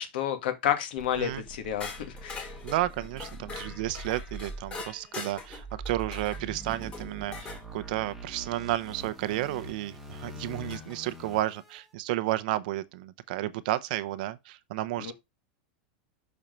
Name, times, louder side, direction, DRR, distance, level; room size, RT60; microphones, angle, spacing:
voice 1, 0.0-2.5 15.0-15.1, left 10 dB, 70° left, 1.9 m, -30 dB
sound 1, 1.0-11.8, right 1 dB, ahead, 1.4 m, -43 dB
sound 2, 1.8-7.6 9.6-9.7 10.7-11.1, left 4 dB, 20° left, 2.5 m, -43 dB
voice 2, 2.6-15.1, right 15 dB, 55° right, 0.8 m, -32 dB
6.3 x 4.4 x 5.3 m
supercardioid pair, 165°, 5 cm